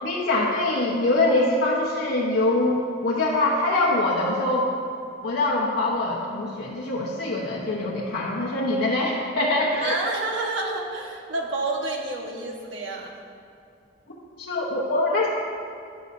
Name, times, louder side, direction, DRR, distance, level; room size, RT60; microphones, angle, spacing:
voice 1, 0.0-4.7 5.2-9.9 14.4-15.3, left 2 dB, 85° left, -6 dB, 1.1 m, -24 dB
voice 2, 9.7-13.1, right 2 dB, 80° right, 0 dB, 1.4 m, -29 dB
12.0 x 10.5 x 2.7 m, 2.5 s
head